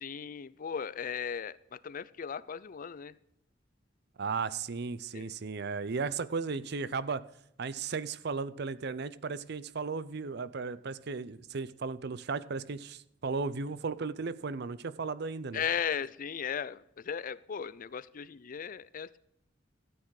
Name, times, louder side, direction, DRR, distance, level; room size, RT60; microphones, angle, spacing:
voice 1, 0.0-3.1 5.1-5.3 15.5-19.2, left 7 dB, 45° left, 18 dB, 0.4 m, -36 dB
voice 2, 4.2-7.2 7.6-15.6, right 4 dB, 60° right, 17 dB, 0.6 m, -35 dB
13.5 x 8.9 x 4.8 m, 0.78 s
head